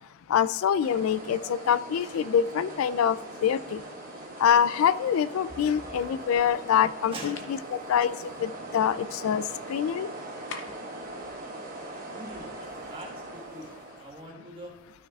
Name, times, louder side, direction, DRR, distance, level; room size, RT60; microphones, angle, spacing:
voice 1, 0.3-3.8 4.4-9.4 9.7-10.1, left 8 dB, 85° left, 17 dB, 0.3 m, -25 dB
sound 1, 0.8-14.2, right 2 dB, 40° right, 1.6 m, -41 dB
voice 2, 7.1-7.6 12.1-14.7, right 1 dB, 25° right, 0 dB, 1.5 m, -43 dB
sound 2, 7.3-7.6 10.5-11.0, left 4 dB, 65° left, 0.9 m, -41 dB
13.0 x 6.5 x 2.4 m, 1.1 s
head